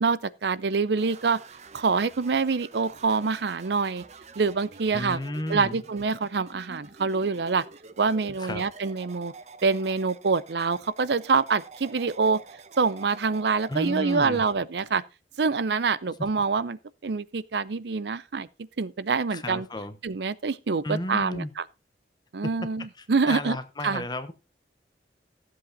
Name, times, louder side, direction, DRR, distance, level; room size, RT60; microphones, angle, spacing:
voice 1, 0.0-1.4 1.7-4.0 4.4-5.2 5.5-7.6 8.0-9.3 9.6-12.4 12.8-15.0 15.4-18.5 18.8-19.7 20.0-21.6 22.3-23.6 23.8-24.0, right 4 dB, 70° right, 0.6 m, -26 dB
sound 1, 1.0-14.6, right 4 dB, 40° right, 0.9 m, -48 dB
voice 2, 4.9-5.8 8.4-8.6 13.7-14.4 16.2-16.3 19.3-19.9 20.8-21.5 22.4-22.5 23.0-24.3, left 1 dB, 25° left, 1.0 m, -33 dB
14.5 x 7.8 x 4.0 m
head